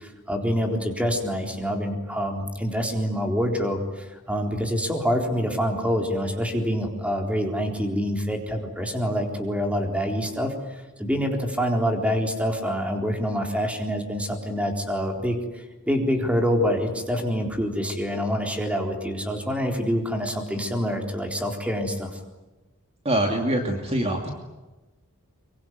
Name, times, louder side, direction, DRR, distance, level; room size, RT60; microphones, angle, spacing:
voice 1, 0.0-22.2, equal, 5° right, 3 dB, 3.9 m, -26 dB
voice 2, 23.0-24.3, right 1 dB, 30° right, 3 dB, 2.7 m, -24 dB
25.0 x 24.0 x 9.6 m, 1.1 s
head